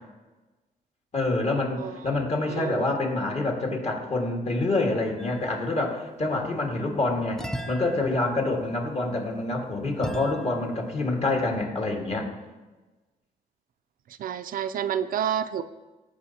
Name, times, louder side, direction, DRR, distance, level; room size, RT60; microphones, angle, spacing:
voice 1, 1.1-7.4 7.7-12.3, left 2 dB, 45° left, 0 dB, 1.8 m, -27 dB
voice 2, 1.8-2.1 2.5-2.9 14.1-15.6, right 9 dB, 65° right, 11 dB, 0.4 m, -29 dB
sound 1, 5.2-5.9 7.4-11.0, equal, 5° left, 0.5 m, -40 dB
15.5 x 5.2 x 2.8 m, 1.2 s
cardioid pair, 115°, 15 cm